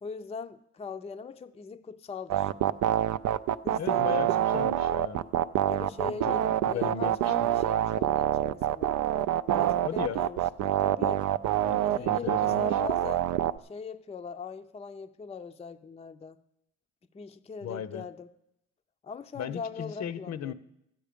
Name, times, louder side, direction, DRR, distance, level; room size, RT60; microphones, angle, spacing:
voice 1, 0.0-2.5 3.6-4.5 5.7-9.0 9.5-11.3 11.5-13.3 13.6-16.4 17.1-18.3 19.0-20.5, left 5 dB, 20° left, 0.5 m, -41 dB
sound 1, 2.3-13.6, right 12 dB, 75° right, 0.5 m, -26 dB
voice 2, 3.7-5.2 6.1-7.3 9.8-10.2 11.6-12.8 17.6-18.0 19.3-20.5, left 8 dB, 60° left, 0.7 m, -36 dB
13.0 x 9.1 x 5.1 m
cardioid pair, 90°, 30 cm